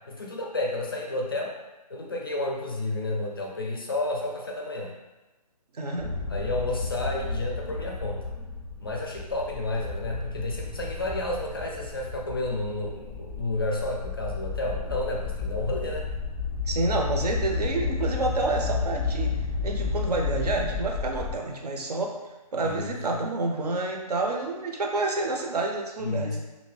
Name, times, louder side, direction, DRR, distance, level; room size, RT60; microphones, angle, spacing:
voice 1, 0.1-1.5 1.9-4.9 6.3-8.3 8.8-16.1 22.6-23.2 26.0-26.4, left 2 dB, 35° left, -1 dB, 0.4 m, -31 dB
voice 2, 5.7-6.1 16.7-19.4 19.6-22.2 22.5-26.4, right 3 dB, 70° right, 1 dB, 0.7 m, -29 dB
sound 1, 6.0-21.3, left 4 dB, 20° right, 0.5 m, -32 dB
2.8 x 2.6 x 3.2 m, 1.1 s
hypercardioid pair, 175°, 21 cm